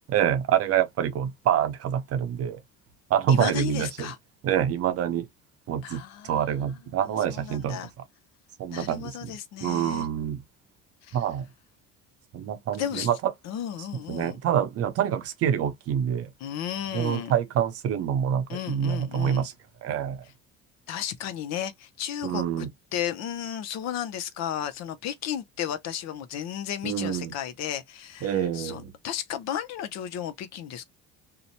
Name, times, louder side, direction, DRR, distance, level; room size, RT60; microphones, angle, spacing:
voice 1, 0.1-2.6 3.1-4.1 4.4-5.3 5.7-7.8 8.6-9.3 9.6-10.4 11.1-11.5 12.3-13.3 14.1-16.3 16.9-19.5 19.8-20.2 22.2-22.7 26.8-27.3 28.2-28.9, right 9 dB, 50° right, 0.7 m, -26 dB
voice 2, 3.3-4.2 5.8-7.9 8.7-10.1 11.0-11.2 12.7-13.1 13.4-14.4 16.4-17.3 18.5-19.5 20.9-30.8, left 10 dB, 60° left, 0.6 m, -34 dB
2.8 x 2.1 x 2.6 m
cardioid pair, 105°, 30 cm